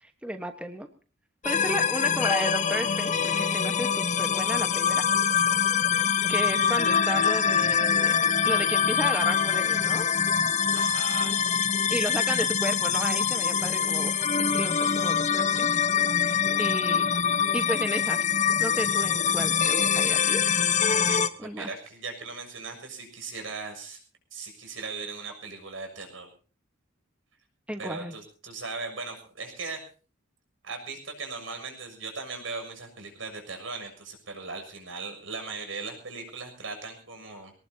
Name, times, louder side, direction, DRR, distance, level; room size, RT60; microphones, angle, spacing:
voice 1, 0.0-0.9 1.4-5.0 6.3-10.1 11.9-15.8 16.2-17.1 17.5-18.2 18.6-20.4 21.4-21.7 27.7-28.1, right 1 dB, 5° right, 7 dB, 1.3 m, -33 dB
sound 1, 1.4-21.3, left 7 dB, 40° left, 1.0 m, -24 dB
voice 2, 10.7-11.3 20.9-24.0 24.3-26.3 27.8-29.8 30.6-37.5, right 4 dB, 75° right, 5 dB, 6.8 m, -38 dB
23.0 x 19.0 x 2.8 m, 0.38 s
head